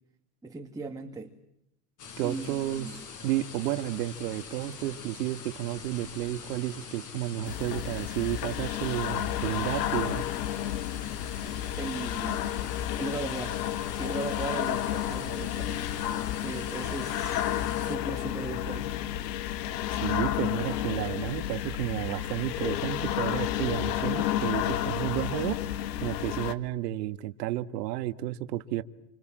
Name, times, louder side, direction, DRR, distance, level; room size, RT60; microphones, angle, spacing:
voice 1, 0.4-1.3 2.2-3.0 11.8-12.4 13.0-13.6 13.9-15.8 16.4-17.4 17.8-18.9, right 3 dB, 5° right, 2 dB, 2.2 m, -37 dB
sound 1, 2.0-18.0, left 5 dB, 35° left, 6.2 m, -44 dB
voice 2, 2.2-2.9 3.2-10.2 20.0-25.6 26.0-28.8, right 14 dB, 75° right, 10 dB, 1.9 m, -32 dB
sound 2, 7.4-26.5, left 12 dB, 75° left, 2.1 m, -31 dB
28.5 x 27.5 x 7.6 m, 0.84 s
supercardioid pair, 135°, 49 cm